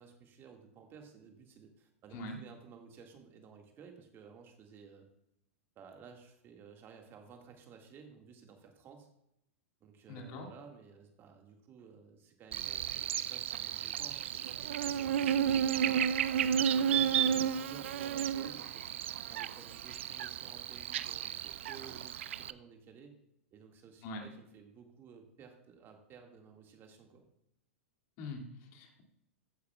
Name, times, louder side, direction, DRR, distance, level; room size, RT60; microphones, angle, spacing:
voice 1, 0.0-5.1 5.8-9.1 9.8-16.2 16.6-23.1 23.5-27.2, right 6 dB, 30° right, 3 dB, 1.8 m, -55 dB
voice 2, 10.1-10.5 24.0-24.2 28.2-29.0, left 2 dB, 45° left, 2 dB, 2.3 m, -43 dB
Buzz, 12.5-22.5, right 9 dB, 65° right, 0.4 m, -32 dB
14.5 x 9.5 x 2.3 m, 0.78 s
hypercardioid pair, 100°, 7 cm